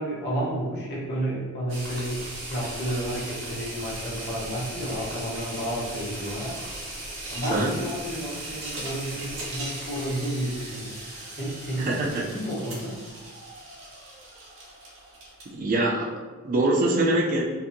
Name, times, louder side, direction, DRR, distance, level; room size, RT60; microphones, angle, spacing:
voice 1, 0.0-2.2 2.5-6.6 7.3-11.0 11.3-13.0, right 1 dB, 50° left, -6 dB, 0.9 m, -31 dB
sound 1, 1.7-15.6, right 1 dB, 60° right, 0.8 m, -38 dB
voice 2, 11.8-12.3 15.5-16.1 16.4-17.4, right 2 dB, 40° right, -2 dB, 0.4 m, -23 dB
2.6 x 2.6 x 2.6 m, 1.3 s
head